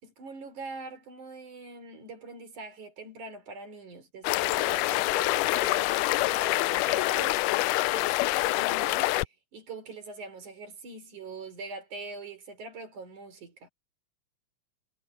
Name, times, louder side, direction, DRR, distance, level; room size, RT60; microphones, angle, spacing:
voice 1, 0.0-9.1 9.5-13.7, right 3 dB, 70° right, 5.6 m, -43 dB
sound 1, 4.2-9.2, left 19 dB, 85° left, 2.1 m, -26 dB
omnidirectional pair, 3.6 m